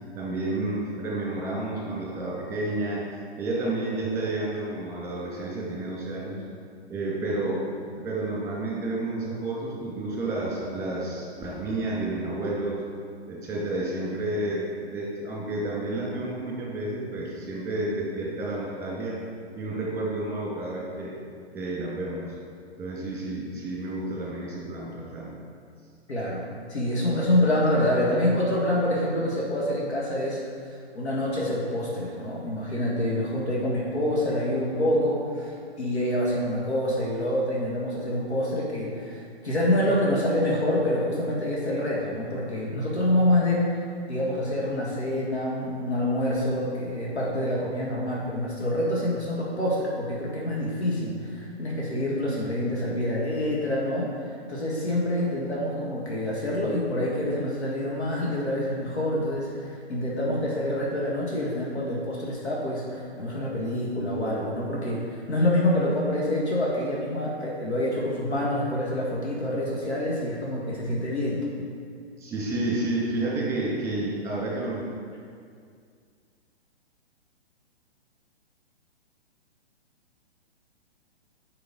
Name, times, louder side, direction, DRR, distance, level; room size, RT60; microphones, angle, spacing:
voice 1, 0.2-3.0 3.4-6.4 6.9-7.6 8.0-12.8 13.3-19.2 19.6-21.2 21.5-22.3 22.8-25.3 72.2-74.8, right 2 dB, 10° right, -5 dB, 2.0 m, -30 dB
voice 2, 26.1-30.4 31.0-35.5 35.8-43.8 44.1-71.4, left 1 dB, 80° left, -4 dB, 1.8 m, -26 dB
8.1 x 5.5 x 4.1 m, 2.2 s
figure-of-eight pair, 120°, 33 cm